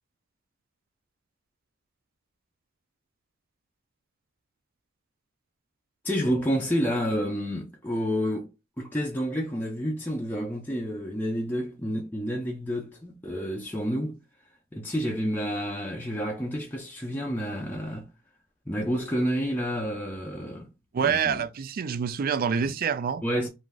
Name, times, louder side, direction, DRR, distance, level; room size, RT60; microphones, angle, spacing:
voice 1, 6.0-14.2 14.7-18.1 18.7-20.7 21.0-21.4 22.6-22.7 23.2-23.5, equal, 10° left, 0.5 m, -29 dB
voice 2, 20.9-23.2, right 6 dB, 45° right, 0.4 m, -26 dB
3.3 x 2.5 x 2.3 m
head